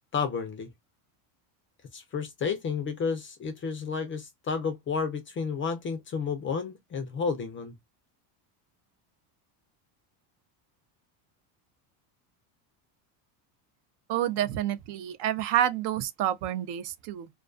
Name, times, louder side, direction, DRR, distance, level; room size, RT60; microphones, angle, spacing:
voice 1, 0.1-0.7 1.9-7.7, left 5 dB, 25° left, 0.4 m, -31 dB
voice 2, 14.1-17.3, right 11 dB, 55° right, 0.5 m, -28 dB
2.3 x 2.3 x 2.4 m
cardioid pair, 125°, 49 cm